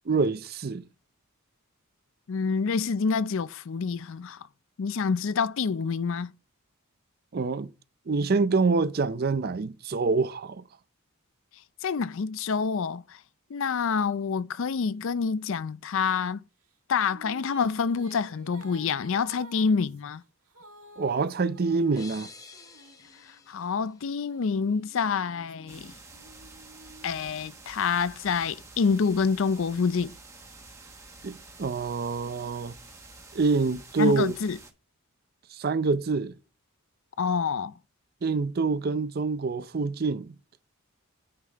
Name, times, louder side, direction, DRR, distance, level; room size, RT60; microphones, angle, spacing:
voice 1, 0.1-0.8 7.3-7.7 8.1-10.6 21.0-22.3 31.2-32.7 33.3-34.3 35.5-36.3 38.2-40.3, right 4 dB, 45° right, 0.5 m, -26 dB
voice 2, 2.3-4.4 4.8-6.3 11.8-13.2 13.5-16.4 16.9-20.2 23.5-25.9 27.0-30.1 34.0-34.6 37.2-37.7, left 5 dB, 60° left, 0.4 m, -27 dB
sound 1, 16.6-23.6 24.2-28.0, right 1 dB, 75° right, 1.8 m, -53 dB
sound 2, 22.0-24.7, left 3 dB, 15° left, 0.6 m, -50 dB
sound 3, 25.7-34.7, right 3 dB, 15° right, 1.2 m, -49 dB
9.5 x 5.6 x 3.4 m
head